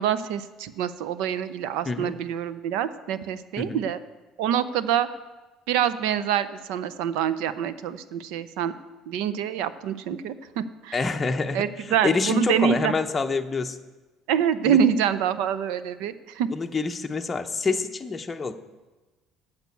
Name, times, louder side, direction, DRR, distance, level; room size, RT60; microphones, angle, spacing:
voice 1, 0.0-4.0 4.4-5.1 5.7-8.7 9.1-11.0 11.5-13.0 14.3-16.5, right 9 dB, 85° right, 14 dB, 0.6 m, -26 dB
voice 2, 10.9-13.8 14.6-14.8 16.5-18.5, left 4 dB, 20° left, 5 dB, 0.7 m, -27 dB
9.2 x 6.6 x 8.3 m, 1.2 s
cardioid pair, 135°, 0 cm